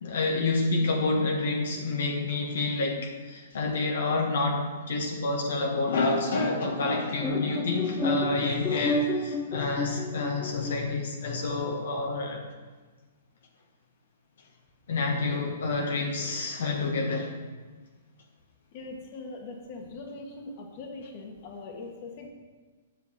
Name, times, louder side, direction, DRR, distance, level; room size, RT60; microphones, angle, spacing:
voice 1, 0.0-12.4 14.9-17.3, left 3 dB, 75° left, 1 dB, 1.4 m, -28 dB
sound 1, 7.2-10.9, equal, 5° left, 0.7 m, -31 dB
voice 2, 18.7-22.3, left 3 dB, 45° left, 1 dB, 1.5 m, -41 dB
8.0 x 5.4 x 6.5 m, 1.4 s
hypercardioid pair, 140°, 0 cm